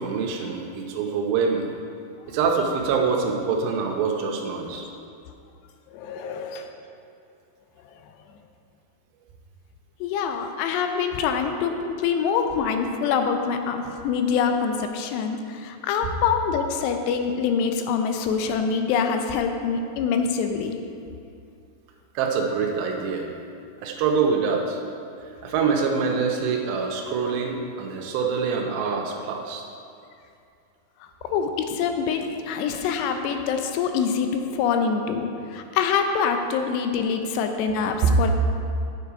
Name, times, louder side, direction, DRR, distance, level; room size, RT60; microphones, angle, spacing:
voice 1, 0.0-1.7 2.3-4.9 22.2-23.3 23.8-24.8 25.2-29.6 37.9-38.1, right 5 dB, 80° right, 2 dB, 2.9 m, -25 dB
voice 2, 5.9-6.7 10.0-20.8 31.2-38.3, left 6 dB, 85° left, 6 dB, 2.7 m, -25 dB
9.9 x 7.1 x 4.7 m, 2.5 s
omnidirectional pair, 4.9 m